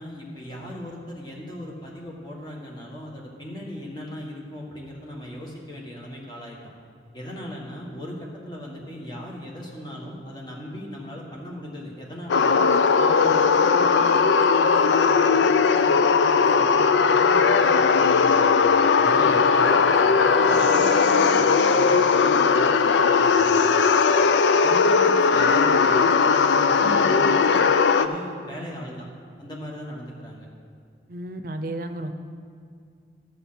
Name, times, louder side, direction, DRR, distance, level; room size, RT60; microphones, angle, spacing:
voice 1, 0.0-6.7 7.1-12.6 13.0-18.6 19.0-19.8 20.0-23.7 24.6-27.7 27.9-29.1 29.4-30.5, equal, 25° left, -2 dB, 1.6 m, -38 dB
sound 1, 12.3-28.1, left 5 dB, 85° left, 0.4 m, -18 dB
Bowed string instrument, 17.9-22.1, equal, 5° right, 0.7 m, -39 dB
voice 2, 26.8-27.1 31.1-32.1, right 1 dB, 50° right, 8 dB, 0.6 m, -33 dB
11.0 x 7.7 x 5.8 m, 2.2 s
head